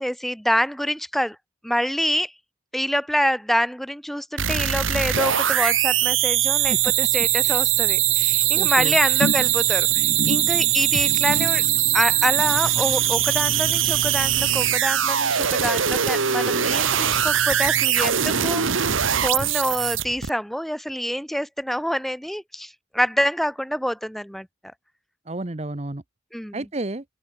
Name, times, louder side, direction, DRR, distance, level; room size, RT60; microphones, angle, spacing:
voice 1, 0.0-1.4 1.6-2.3 2.7-6.7 7.1-11.6 11.9-24.5 26.3-26.6, equal, ahead, 2.1 m, -26 dB
sound 1, 4.4-20.3, right 11 dB, 85° right, 1.6 m, -21 dB
voice 2, 8.5-9.0 25.3-26.0 26.5-27.0, right 2 dB, 35° right, 0.9 m, -31 dB
sound 2, 9.2-15.8 16.1-16.5 16.8-16.9, left 1 dB, 60° left, 2.0 m, -34 dB
open air
head